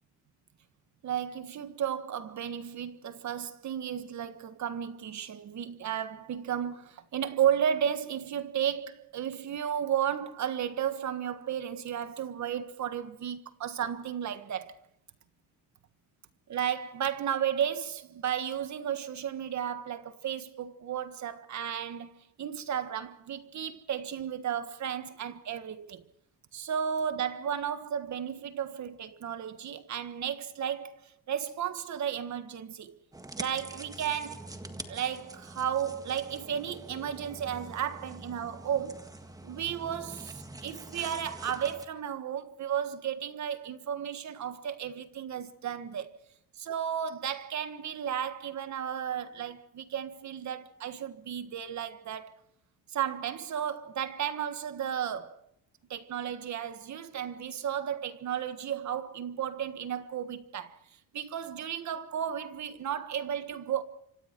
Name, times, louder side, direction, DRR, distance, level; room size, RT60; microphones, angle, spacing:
voice 1, 1.0-14.8 16.5-22.1 22.4-26.0 26.5-33.0 33.4-34.5 34.9-39.1 39.4-46.1 46.6-52.3 52.9-55.4 55.9-60.7 61.1-63.8, right 9 dB, 45° right, 1.5 m, -33 dB
sound 1, 33.1-41.9, right 2 dB, 10° right, 1.7 m, -45 dB
26.0 x 25.5 x 4.6 m
cardioid pair, 160°, 38 cm